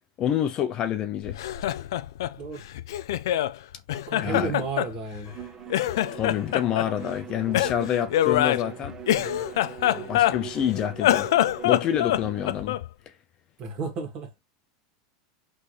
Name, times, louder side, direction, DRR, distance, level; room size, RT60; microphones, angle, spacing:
voice 1, 0.2-1.4 4.2-4.5 6.1-8.9 10.1-11.3 11.6-12.8, left 10 dB, 35° left, 0.5 m, -27 dB
Laughter, 1.3-3.5 3.9-5.4 5.7-6.9 7.5-10.6 10.9-12.9, left 13 dB, 80° left, 0.4 m, -25 dB
voice 2, 4.1-5.3 9.8-10.1 13.6-14.3, right 4 dB, 40° right, 1.8 m, -33 dB
Bowed string instrument, 5.2-12.7, right 9 dB, 25° right, 0.8 m, -41 dB
4.1 x 3.3 x 3.3 m
supercardioid pair, 145°, 2 cm